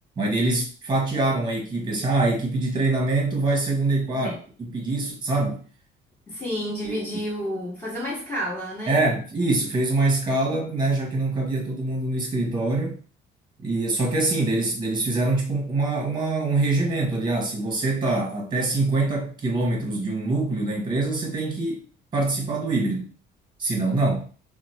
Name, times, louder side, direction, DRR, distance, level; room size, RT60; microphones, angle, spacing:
voice 1, 0.2-4.4 4.7-5.6 6.8-7.1 8.9-13.0 13.6-21.8 22.1-23.1 23.6-24.3, right 2 dB, 25° right, 1.1 m, -24 dB
voice 2, 6.3-9.0, equal, 15° left, 1.5 m, -30 dB
2.9 x 2.1 x 4.1 m
cardioid pair, 140°, 19 cm